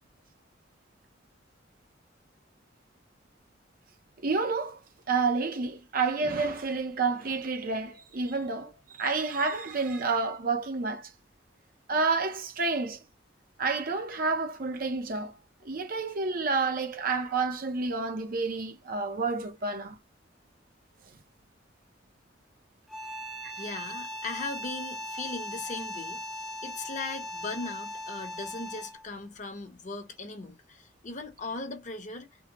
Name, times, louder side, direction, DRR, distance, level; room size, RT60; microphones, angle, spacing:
voice 1, 4.2-4.8 5.1-8.7 9.0-11.1 11.9-13.0 13.6-15.3 15.6-20.0, right 4 dB, 50° right, 0.6 m, -29 dB
sound 1, 22.9-29.1, left 1 dB, ahead, 0.7 m, -39 dB
voice 2, 23.6-26.2 26.6-32.3, left 3 dB, 40° left, 0.8 m, -38 dB
3.6 x 2.1 x 2.9 m
head